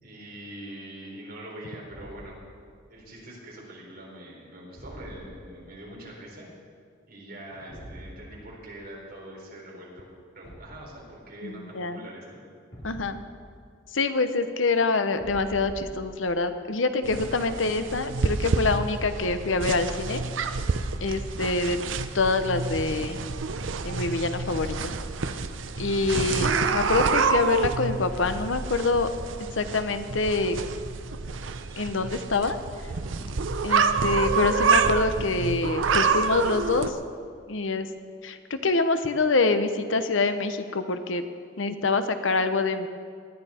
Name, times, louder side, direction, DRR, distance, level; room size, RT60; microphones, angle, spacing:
voice 1, 0.0-2.4 2.9-6.5 7.1-12.4 25.8-26.4 32.9-33.2, right 1 dB, 50° right, -3 dB, 4.1 m, -43 dB
Thump thud, 1.9-2.4 4.7-5.4 7.7-8.1 10.4-10.9 12.7-13.4 15.1-16.1, equal, 60° left, 3.7 m, -43 dB
voice 2, 11.4-12.0 12.8-13.2 13.9-20.2 21.0-21.8 22.1-23.2 23.8-24.9 25.8-29.1 29.5-30.6 31.8-32.6 33.6-37.0 37.5-37.9 38.2-41.2 41.6-42.9, left 3 dB, 90° left, 9 dB, 0.9 m, -25 dB
sound 1, 17.0-36.9, right 4 dB, 85° right, 0.7 m, -28 dB
19.0 x 11.5 x 4.4 m, 2.2 s
head